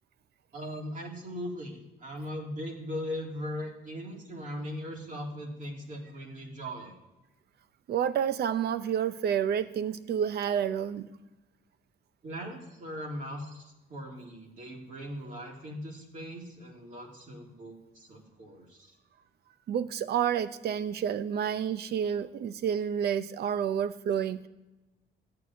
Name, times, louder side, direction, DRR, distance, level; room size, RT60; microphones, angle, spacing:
voice 1, 0.5-7.0 12.2-18.9, equal, 40° right, 0 dB, 2.3 m, -39 dB
voice 2, 7.9-11.1 19.7-24.5, right 8 dB, 60° right, 13 dB, 0.7 m, -29 dB
14.5 x 4.8 x 9.1 m, 1.1 s
cardioid pair, 165°, 19 cm